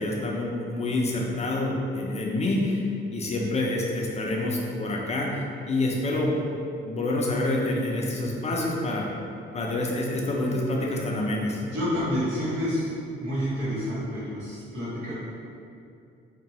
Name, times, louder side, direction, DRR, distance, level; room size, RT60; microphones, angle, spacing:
voice 1, 0.0-2.8 3.1-6.3 6.8-9.1 9.5-11.6, left 2 dB, 35° left, -2 dB, 0.4 m, -27 dB
voice 2, 11.5-12.9 13.2-15.1, equal, 80° right, -11 dB, 1.4 m, -29 dB
2.8 x 2.2 x 2.8 m, 2.5 s
cardioid pair, 90°, 20 cm